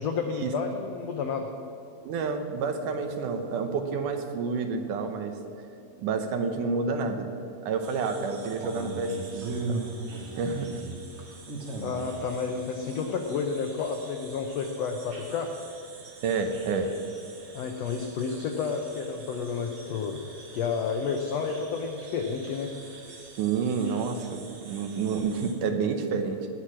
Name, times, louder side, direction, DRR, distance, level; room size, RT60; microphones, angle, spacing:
voice 1, 0.0-1.5 11.8-15.5 17.5-22.7, left 5 dB, 85° left, 4 dB, 1.4 m, -31 dB
voice 2, 2.1-5.3 6.0-7.3 7.6-9.8 10.3-10.8 16.2-16.9 23.4-26.4, right 5 dB, 70° right, 6 dB, 2.2 m, -29 dB
sound 1, 7.8-25.5, right 3 dB, 50° right, 2.3 m, -41 dB
16.5 x 6.0 x 9.8 m, 2.6 s
omnidirectional pair, 4.1 m